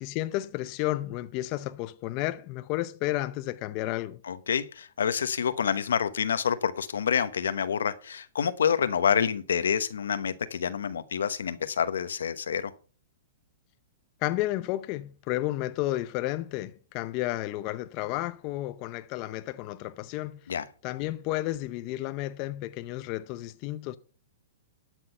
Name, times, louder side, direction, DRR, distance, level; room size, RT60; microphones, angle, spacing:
voice 1, 0.0-4.2 14.2-20.4 20.8-24.0, left 16 dB, 40° left, 0.6 m, -32 dB
voice 2, 4.2-12.7 20.5-20.6, left 7 dB, 90° left, 1.0 m, -27 dB
12.0 x 6.3 x 5.6 m
hypercardioid pair, 140°, 0 cm